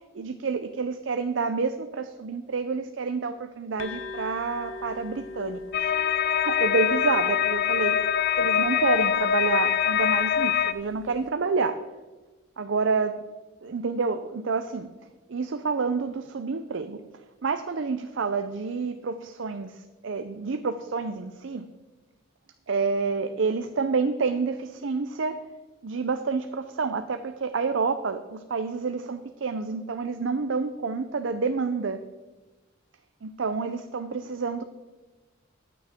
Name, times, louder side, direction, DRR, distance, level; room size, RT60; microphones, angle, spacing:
voice 1, 0.0-5.9 6.4-8.0 8.4-11.8 12.6-13.2 13.6-14.9 15.3-17.0 17.4-21.7 22.7-25.4 25.8-32.0 33.2-34.6, right 4 dB, 70° right, 9 dB, 0.5 m, -28 dB
sound 1, 3.8-11.3, left 3 dB, 70° left, 0.8 m, -42 dB
sound 2, 5.7-10.7, left 9 dB, 50° left, 0.4 m, -24 dB
14.5 x 9.3 x 3.6 m, 1.2 s
head